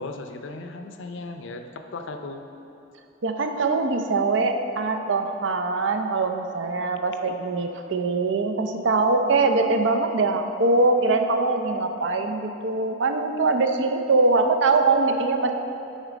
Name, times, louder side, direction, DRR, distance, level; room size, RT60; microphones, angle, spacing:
voice 1, 0.0-2.4, left 3 dB, 70° left, 6 dB, 0.5 m, -36 dB
voice 2, 3.2-15.5, right 3 dB, 65° right, 5 dB, 0.5 m, -22 dB
8.0 x 4.3 x 5.0 m, 2.8 s
head